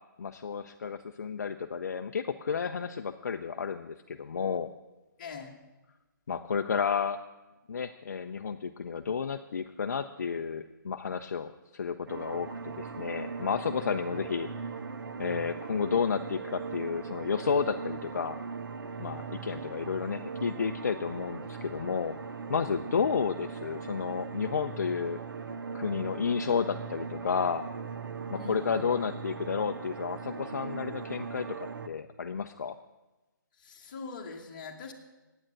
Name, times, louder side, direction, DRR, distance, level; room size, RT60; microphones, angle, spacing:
voice 1, 0.2-4.7 6.3-7.2 7.7-14.5 15.2-18.4 19.0-22.2 22.5-25.2 25.7-27.6 28.3-32.7, left 6 dB, 55° left, 6 dB, 0.5 m, -31 dB
voice 2, 5.2-5.6 14.1-14.2 28.3-28.9 33.6-34.9, left 4 dB, 25° left, 0 dB, 1.4 m, -42 dB
sound 1, 12.1-31.9, right 5 dB, 85° right, 0.8 m, -39 dB
9.0 x 8.8 x 8.8 m, 1.1 s
hypercardioid pair, 175°, 11 cm